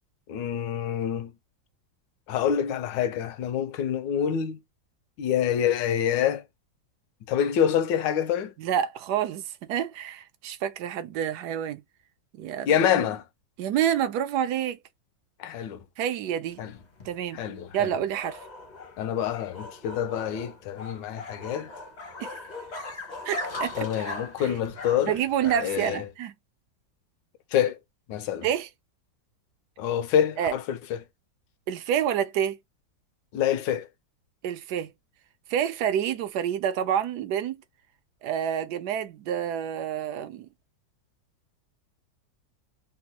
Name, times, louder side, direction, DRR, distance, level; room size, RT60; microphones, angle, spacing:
voice 1, 0.3-1.3 2.3-4.6 5.2-6.4 7.3-8.5 12.7-13.2 15.4-15.8 16.6-16.7 17.3-17.9 19.0-21.7 23.8-25.2 25.6-26.1 27.5-27.8 28.1-28.5 29.8-31.0 33.3-33.9, left 9 dB, 80° left, 1.3 m, -26 dB
voice 2, 8.6-11.8 12.3-12.7 13.6-14.8 16.0-16.6 17.0-17.4 17.7-18.4 22.2-22.4 23.2-23.9 24.4-24.5 25.0-26.3 28.4-28.7 30.4-30.5 31.7-32.6 34.4-34.9 35.5-37.6 38.2-40.5, right 9 dB, 70° right, 1.0 m, -28 dB
sound 1, 16.5-26.0, left 2 dB, 40° left, 0.6 m, -39 dB
3.5 x 2.2 x 2.8 m
omnidirectional pair, 2.0 m